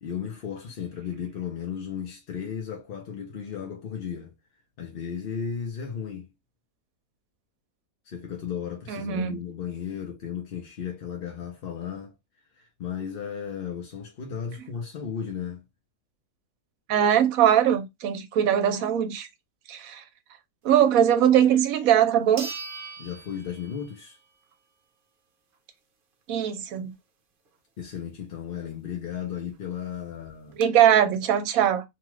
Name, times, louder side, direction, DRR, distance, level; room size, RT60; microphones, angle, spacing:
voice 1, 0.0-4.3 4.8-6.3 8.1-12.1 12.6-15.6 23.0-24.2 27.8-30.6, left 8 dB, 55° left, 0.6 m, -35 dB
voice 2, 8.9-9.4 16.9-19.3 19.7-20.0 20.6-22.5 26.3-26.9 30.6-31.8, right 10 dB, 75° right, 1.0 m, -21 dB
sound 1, 21.5-21.6 22.4-24.1 24.5-24.6 29.2-29.3 29.5-29.6 30.2-30.6, right 3 dB, 50° right, 0.7 m, -40 dB
2.9 x 2.3 x 3.0 m
omnidirectional pair, 1.6 m